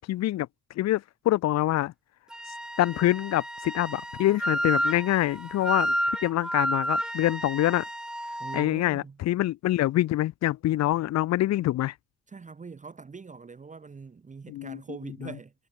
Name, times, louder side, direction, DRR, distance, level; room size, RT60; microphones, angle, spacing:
voice 1, 0.1-0.5 0.8-1.9 2.8-5.9 6.2-7.9 8.5-11.9 14.5-14.8, left 15 dB, 60° left, 0.5 m, -25 dB
Wind instrument woodwind instrument, 2.3-8.7, equal, ahead, 1.2 m, -31 dB
voice 2, 8.4-9.2 12.3-15.5, right 5 dB, 25° right, 1.1 m, -42 dB
cardioid pair, 90°, 30 cm